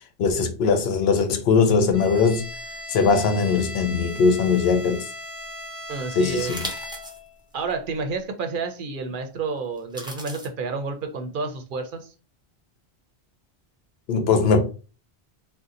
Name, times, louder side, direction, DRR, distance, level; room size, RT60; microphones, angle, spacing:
voice 1, 0.2-2.5 2.9-5.0 6.1-6.6 14.1-14.6, left 5 dB, 80° left, 0.8 m, -20 dB
Bowed string instrument, 1.9-7.3, left 1 dB, 40° left, 0.9 m, -38 dB
voice 2, 5.9-6.5 7.5-12.1, right 4 dB, 60° right, 0.6 m, -30 dB
sound 1, 6.3-7.2 7.7-7.8 9.8-10.5, right 1 dB, 5° right, 0.4 m, -36 dB
2.7 x 2.0 x 3.6 m
omnidirectional pair, 1.1 m